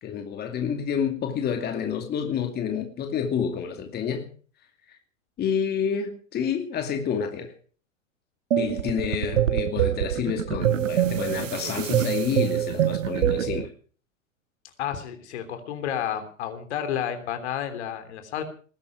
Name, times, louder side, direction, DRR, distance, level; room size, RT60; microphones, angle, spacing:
voice 1, 0.0-4.3 4.9-5.0 5.4-7.5 8.6-13.7, left 7 dB, 25° left, 2.4 m, -29 dB
sound 1, 8.5-13.7, right 10 dB, 70° right, 0.8 m, -25 dB
voice 2, 14.8-18.4, left 9 dB, 55° left, 3.4 m, -31 dB
20.0 x 11.0 x 6.0 m
figure-of-eight pair, 105°, 39 cm